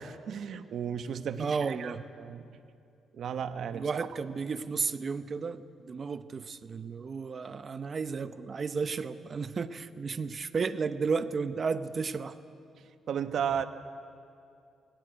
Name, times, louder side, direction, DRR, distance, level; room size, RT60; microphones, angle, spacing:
voice 1, 0.0-2.6 3.1-4.1 13.1-13.7, right 8 dB, 60° right, 10 dB, 1.0 m, -34 dB
voice 2, 1.4-2.0 3.7-12.3, right 5 dB, 35° right, 12 dB, 0.8 m, -33 dB
21.0 x 18.0 x 8.1 m, 2.5 s
cardioid pair, 135°, 0 cm